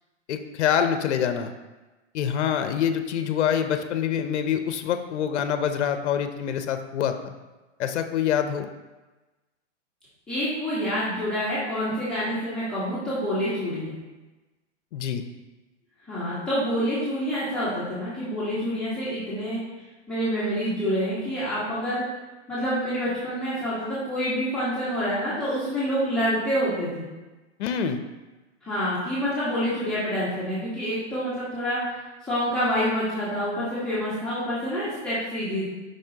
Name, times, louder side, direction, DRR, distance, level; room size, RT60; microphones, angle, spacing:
voice 1, 0.3-1.5 2.1-7.3 7.8-8.7 14.9-15.2 27.6-28.0, left 8 dB, 65° left, 8 dB, 0.6 m, -25 dB
voice 2, 10.3-13.9 16.1-19.6 20.1-22.0 22.5-27.0 28.6-32.0 32.3-35.7, equal, ahead, -13 dB, 1.2 m, -27 dB
7.2 x 5.4 x 2.8 m, 1.1 s
hypercardioid pair, 170°, 36 cm